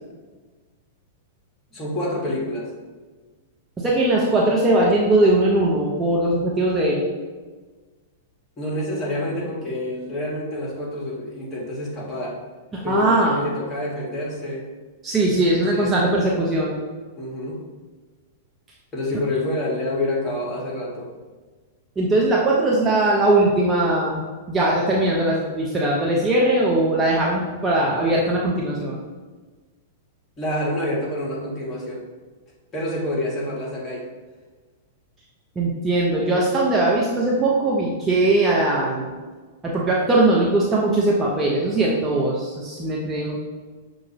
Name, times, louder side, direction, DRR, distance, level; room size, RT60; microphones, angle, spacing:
voice 1, 1.7-2.7 8.6-12.4 12.8-14.6 15.5-16.3 17.2-17.6 18.9-21.1 30.4-32.0 32.7-34.1, left 1 dB, 20° left, -4 dB, 1.5 m, -27 dB
voice 2, 3.8-7.1 12.7-13.5 15.0-16.8 22.0-29.0 35.6-39.1 39.6-43.4, right 2 dB, 15° right, -4 dB, 0.6 m, -20 dB
5.7 x 2.6 x 3.0 m, 1.4 s
figure-of-eight pair, 100°, 0 cm